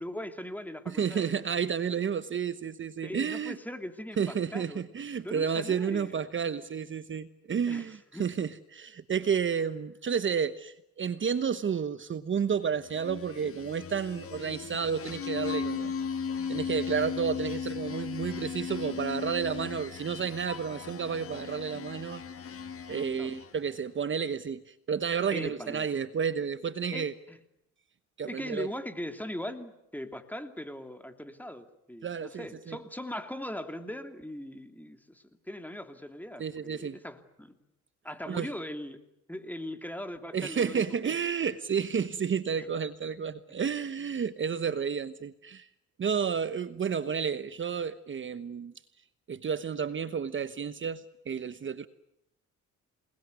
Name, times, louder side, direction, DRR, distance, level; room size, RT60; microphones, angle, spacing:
voice 1, 0.0-1.4 3.0-4.8 5.2-6.2 7.7-8.3 19.1-19.3 22.9-23.3 25.3-25.9 26.9-27.4 28.3-37.6 38.0-39.0 39.3-41.2 42.6-42.7, left 1 dB, 5° left, 7 dB, 2.8 m, -40 dB
voice 2, 0.9-3.6 4.2-15.9 16.5-22.2 22.9-27.1 28.2-28.7 32.0-32.8 36.4-37.0 38.3-38.5 40.3-45.7 46.0-48.7 49.3-51.9, right 7 dB, 40° right, 12 dB, 1.1 m, -31 dB
sound 1, 12.8-23.7, left 6 dB, 50° left, 1.8 m, -37 dB
28.0 x 20.0 x 9.6 m, 0.84 s
cardioid pair, 90°, 30 cm